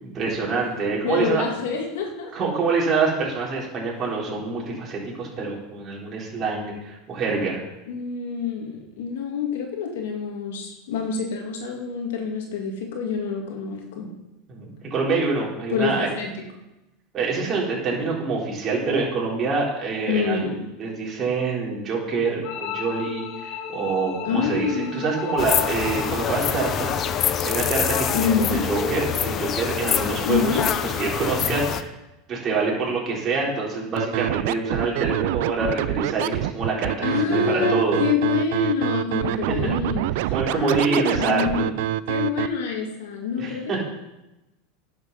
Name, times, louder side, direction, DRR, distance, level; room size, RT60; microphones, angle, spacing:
voice 1, 0.0-1.4 2.3-7.6 14.5-16.1 17.1-20.4 20.8-27.0 27.4-31.9 32.3-38.0 39.5-39.6 40.3-41.7 43.4-43.8, right 4 dB, 30° right, -3 dB, 4.0 m, -26 dB
voice 2, 1.0-2.3 7.9-14.1 15.7-16.3 20.1-20.6 24.3-25.0 28.1-28.6 30.2-30.6 37.0-41.7 42.1-43.8, left 6 dB, 85° left, 1 dB, 2.2 m, -26 dB
sound 1, 22.4-29.4, left 6 dB, 55° left, 1.5 m, -34 dB
sound 2, 25.4-31.8, left 9 dB, 35° left, 0.6 m, -25 dB
Scratching (performance technique), 34.0-42.5, right 15 dB, 70° right, 0.4 m, -26 dB
10.5 x 6.7 x 5.9 m, 0.98 s
supercardioid pair, 130°, 0 cm